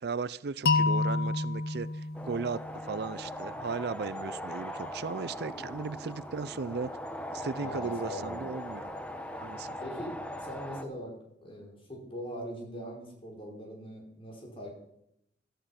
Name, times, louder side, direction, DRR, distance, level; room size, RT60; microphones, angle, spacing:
voice 1, 0.0-6.9 7.3-8.9 9.4-9.7, right 4 dB, 65° right, 18 dB, 0.5 m, -36 dB
sound 1, 0.7-3.6, left 3 dB, 60° left, 0.7 m, -30 dB
sound 2, 2.1-10.8, left 1 dB, 10° left, 1.1 m, -40 dB
voice 2, 7.6-8.4 9.8-11.1 11.4-14.7, equal, 30° left, 0 dB, 5.0 m, -41 dB
16.5 x 12.5 x 5.8 m, 0.77 s
head